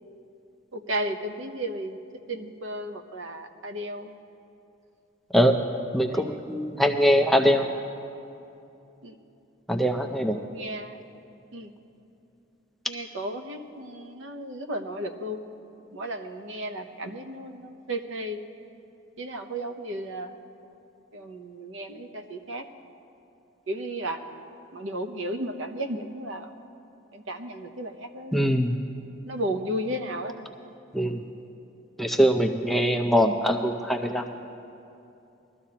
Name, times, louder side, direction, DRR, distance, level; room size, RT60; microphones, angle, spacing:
voice 1, 0.7-2.0 2.3-4.1 6.1-6.4 9.0-9.2 10.5-11.0 11.5-11.7 12.9-15.4 15.9-18.4 19.2-20.4 21.1-22.7 23.7-24.2 24.7-26.5 27.1-28.7 29.3-30.4 31.3-31.4, right 1 dB, 70° right, 6 dB, 0.8 m, -34 dB
voice 2, 5.9-7.7 9.7-10.4 28.3-28.8 30.9-31.2 32.0-34.2, equal, ahead, 3 dB, 0.4 m, -22 dB
21.5 x 13.0 x 2.9 m, 2.7 s
head